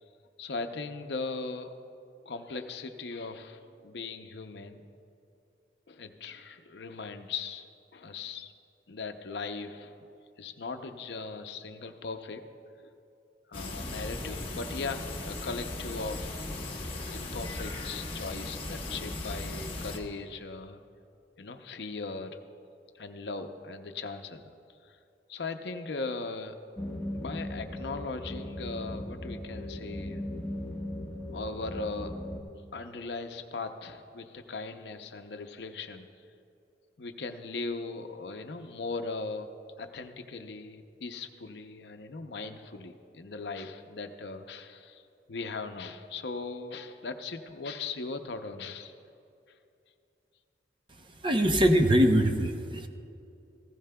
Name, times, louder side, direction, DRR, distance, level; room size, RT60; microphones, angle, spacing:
voice 1, 0.4-1.7 2.2-4.8 5.9-7.7 7.9-8.5 8.9-12.4 12.8-12.9 13.5-16.4 17.1-20.8 21.4-22.4 22.9-24.5 24.8-25.0 25.3-26.6 27.1-30.2 31.3-32.1 32.7-36.1 37.0-39.5 39.8-45.0 45.3-48.9, left 3 dB, 70° left, 7 dB, 0.6 m, -39 dB
sound 1, 13.5-20.0, left 2 dB, 30° left, 1.2 m, -37 dB
sound 2, 26.8-32.4, left 1 dB, 10° left, 1.3 m, -38 dB
voice 2, 51.0-52.9, equal, 30° right, 5 dB, 0.7 m, -23 dB
16.0 x 15.5 x 2.2 m, 2.6 s
head